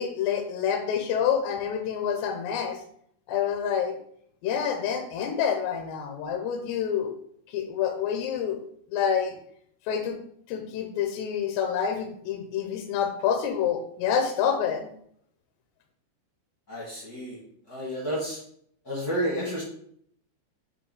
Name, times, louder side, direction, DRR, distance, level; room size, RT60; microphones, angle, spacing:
voice 1, 0.0-2.8 3.3-4.0 4.4-7.1 7.5-8.6 8.9-9.3 9.9-10.2 10.5-14.9, left 8 dB, 80° left, 4 dB, 2.6 m, -27 dB
voice 2, 16.7-17.4 17.7-18.4 18.8-19.6, equal, 55° left, -6 dB, 1.0 m, -30 dB
7.8 x 3.0 x 4.8 m, 0.67 s
omnidirectional pair, 5.1 m